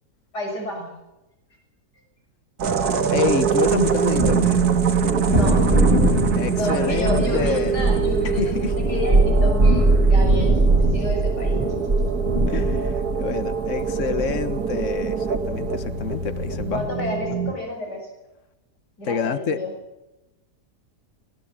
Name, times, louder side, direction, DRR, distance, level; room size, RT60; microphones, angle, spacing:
voice 1, 0.3-0.9 5.2-5.6 6.5-10.6 10.9-11.6 16.7-18.1 19.0-19.7, left 1 dB, 75° left, 2 dB, 7.2 m, -30 dB
sound 1, 2.6-17.5, right 7 dB, 65° right, 1.9 m, -25 dB
voice 2, 3.1-4.6 6.3-7.7 8.2-8.7 12.5-16.9 17.3-17.4 19.0-19.6, left 6 dB, 50° left, 11 dB, 1.7 m, -27 dB
Thunder, 3.7-16.9, right 2 dB, 25° right, 3.5 m, -22 dB
21.5 x 20.0 x 7.4 m, 0.98 s
omnidirectional pair, 1.8 m